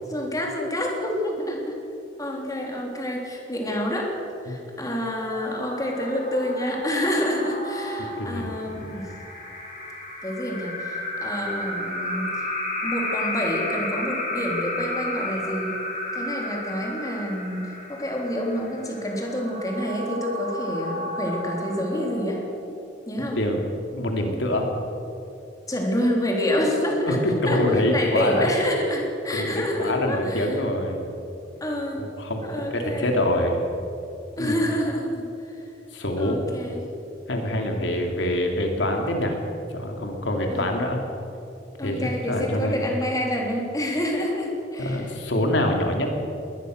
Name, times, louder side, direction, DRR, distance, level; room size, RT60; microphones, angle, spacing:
voice 1, 0.1-1.8 2.2-4.2 4.4-9.1 10.2-12.5 12.8-15.8 16.1-22.5 23.1-23.4 25.7-27.2 27.4-30.6 31.6-32.0 32.4-33.1 34.4-35.6 36.2-36.8 40.5-40.7 41.8-45.1, equal, 20° left, 0 dB, 3.4 m, -28 dB
sound 1, 5.2-22.6, left 1 dB, 40° left, 5.0 m, -33 dB
voice 2, 8.2-8.5 23.3-23.7 23.9-24.7 27.1-28.5 29.3-31.1 32.2-33.6 34.4-34.5 35.9-36.5 37.3-39.4 39.7-41.0 41.8-42.8 44.8-46.1, left 1 dB, 85° left, 2 dB, 3.1 m, -25 dB
22.0 x 19.0 x 6.6 m, 2.7 s
head